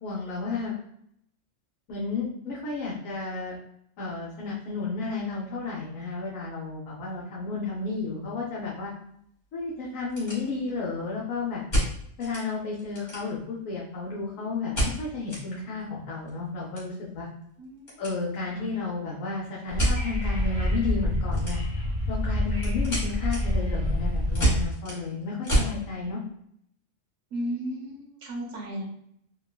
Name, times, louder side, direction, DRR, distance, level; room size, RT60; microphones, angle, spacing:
voice 1, 0.0-0.8 1.9-3.6 4.0-8.9 9.5-11.6 12.2-17.3 18.0-21.6 22.1-26.2, left 4 dB, 80° left, -5 dB, 1.0 m, -32 dB
sound 1, 7.7-7.9 8.2-8.3 8.9-9.0 9.2-9.3 9.9-10.9 11.7-12.5 12.8-13.6 14.7-15.4 15.8-15.9 16.2-18.2 18.4-18.7 19.8-20.0 21.3-21.9 22.2-25.8, right 1 dB, 35° left, 1.4 m, -28 dB
voice 2, 17.6-18.0 18.5-18.7 27.3-28.8, equal, 75° right, -1 dB, 1.2 m, -34 dB
Wind / Subway metro underground, 19.7-24.7, left 1 dB, 20° right, 0.9 m, -27 dB
3.6 x 2.2 x 2.2 m, 0.72 s
omnidirectional pair, 1.3 m